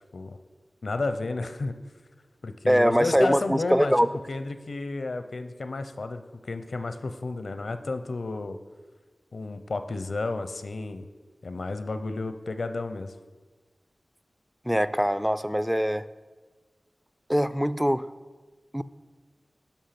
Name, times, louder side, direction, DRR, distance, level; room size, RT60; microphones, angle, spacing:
voice 1, 0.8-1.8 2.4-3.9 4.3-8.6 9.3-11.1 11.4-13.1, left 3 dB, 75° left, 9 dB, 0.6 m, -32 dB
voice 2, 2.7-4.1 14.7-16.0 17.3-18.1 18.7-18.8, equal, 5° right, 15 dB, 0.3 m, -23 dB
11.5 x 5.4 x 5.8 m, 1.4 s
wide cardioid pair, 75°, 0 cm